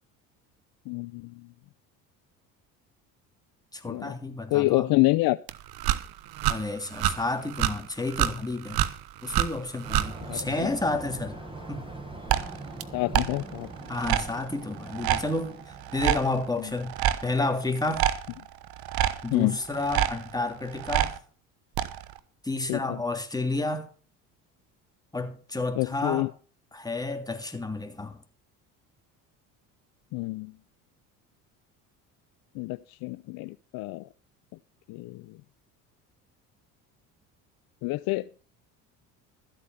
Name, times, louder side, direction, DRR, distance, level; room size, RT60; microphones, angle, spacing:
voice 1, 0.9-1.4 3.8-4.1 4.5-5.4 10.3-10.7 12.9-13.7 16.6-16.7 19.3-19.6 22.7-23.0 25.8-26.3 30.1-30.5 32.5-34.0 34.9-35.4 37.8-38.3, left 21 dB, 60° left, 0.6 m, -27 dB
voice 2, 3.7-4.9 6.5-8.8 9.2-11.4 11.7-11.9 13.9-17.0 17.2-18.1 19.2-21.2 22.4-23.9 25.1-26.3 26.7-28.2, left 2 dB, 10° left, 3.0 m, -31 dB
sound 1, 5.5-10.4 12.3-12.8 13.1-21.2 21.8-22.2, right 12 dB, 60° right, 1.2 m, -29 dB
sound 2, 9.8-16.3, right 2 dB, 15° right, 5.4 m, -42 dB
14.0 x 8.3 x 5.6 m
hypercardioid pair, 65°, 41 cm